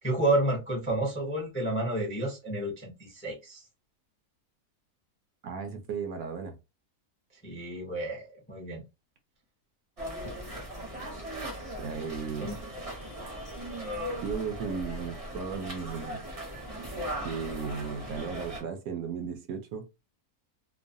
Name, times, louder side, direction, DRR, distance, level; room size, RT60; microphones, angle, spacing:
voice 1, 0.0-3.6 7.4-8.8 12.4-12.6, right 2 dB, 15° left, 0.4 m, -30 dB
voice 2, 5.4-6.5 11.8-12.5 14.2-16.2 17.2-19.8, right 6 dB, 70° right, 1.0 m, -35 dB
sound 1, 10.0-18.6, equal, 35° right, 0.6 m, -38 dB
3.0 x 2.0 x 2.6 m
omnidirectional pair, 1.7 m